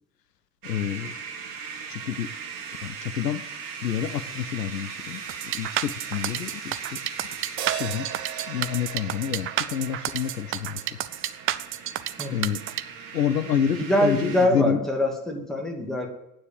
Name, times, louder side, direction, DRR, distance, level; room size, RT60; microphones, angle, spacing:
voice 1, 0.6-1.1 1.9-2.3 2.8-3.4 3.8-7.0 7.7-8.1 8.5-11.0 12.3-12.6 13.1-14.8, left 9 dB, 75° left, 13 dB, 0.7 m, -28 dB
sound 1, 0.6-14.5, right 6 dB, 45° right, 2.0 m, -39 dB
sound 2, 5.3-12.8, right 13 dB, 25° right, 0.5 m, -30 dB
sound 3, 7.6-11.9, right 11 dB, 75° right, 0.7 m, -38 dB
voice 2, 12.2-12.6 13.7-16.1, equal, ahead, 1 dB, 2.5 m, -24 dB
9.5 x 7.6 x 9.1 m, 0.85 s
figure-of-eight pair, 70°, 49 cm